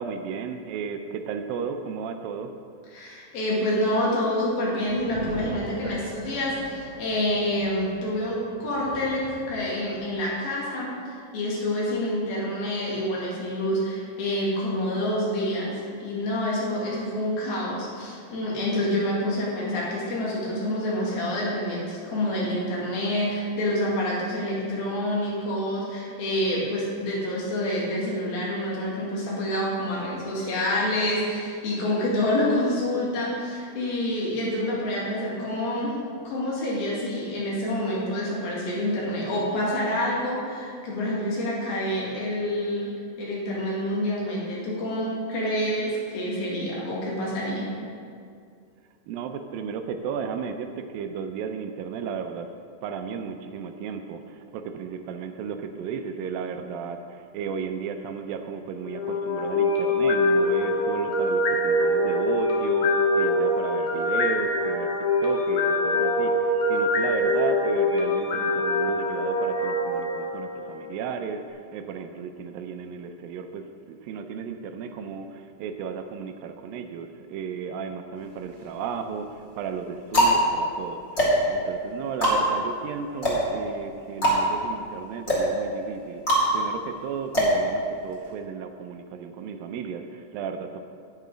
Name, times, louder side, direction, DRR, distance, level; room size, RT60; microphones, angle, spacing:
voice 1, 0.0-2.5 49.1-52.5 52.8-86.2 86.5-90.8, right 6 dB, 80° right, 7 dB, 2.3 m, -34 dB
voice 2, 2.9-36.0 36.2-42.9 43.2-47.7, left 1 dB, 85° left, -5 dB, 4.1 m, -27 dB
sound 1, 4.8-10.3, right 3 dB, 60° right, 1.9 m, -41 dB
sound 2, 58.8-71.0, left 1 dB, 60° left, 2.2 m, -24 dB
sound 3, 78.2-78.9 79.6-88.3, equal, 25° left, 2.2 m, -24 dB
9.5 x 8.3 x 5.0 m, 2.3 s
omnidirectional pair, 4.2 m